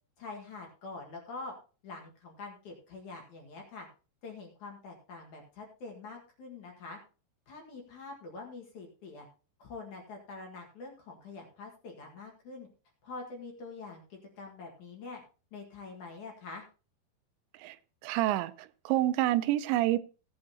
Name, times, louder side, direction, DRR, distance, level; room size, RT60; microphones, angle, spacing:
voice 1, 0.2-1.5 1.8-3.9 4.2-7.0 7.5-9.3 9.6-12.7 13.0-15.2 15.5-16.6, left 3 dB, 55° left, 1 dB, 2.6 m, -45 dB
voice 2, 18.0-20.0, right 15 dB, 90° right, 14 dB, 2.9 m, -28 dB
16.5 x 8.8 x 2.8 m, 0.35 s
omnidirectional pair, 5.0 m